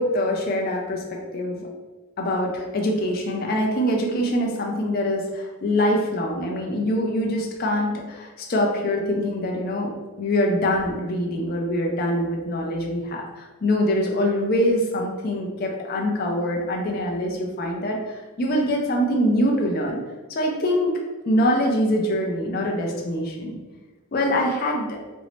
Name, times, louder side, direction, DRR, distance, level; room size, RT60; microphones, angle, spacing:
voice 1, 0.0-1.7 2.2-9.9 10.2-20.0 20.3-21.0 21.3-23.6 24.1-25.0, equal, 45° left, 0 dB, 0.4 m, -24 dB
2.6 x 2.0 x 3.0 m, 1.2 s
head